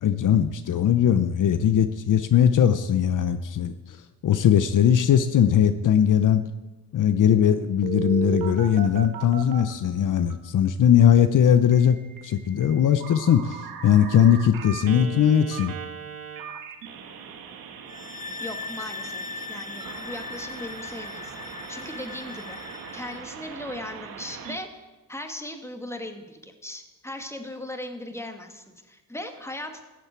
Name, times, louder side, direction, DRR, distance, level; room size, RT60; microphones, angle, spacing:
voice 1, 0.0-6.4 6.9-12.0 12.2-15.7, left 9 dB, 65° left, 10 dB, 0.8 m, -20 dB
Telephone, 7.8-10.3 11.7-24.6, right 7 dB, 90° right, 1.6 m, -38 dB
sound 1, 17.9-23.3, left 4 dB, 25° left, 0.8 m, -39 dB
voice 2, 18.4-29.8, left 1 dB, 10° left, 5 dB, 2.0 m, -38 dB
15.0 x 7.8 x 8.3 m, 1.1 s
cardioid pair, 85°, 34 cm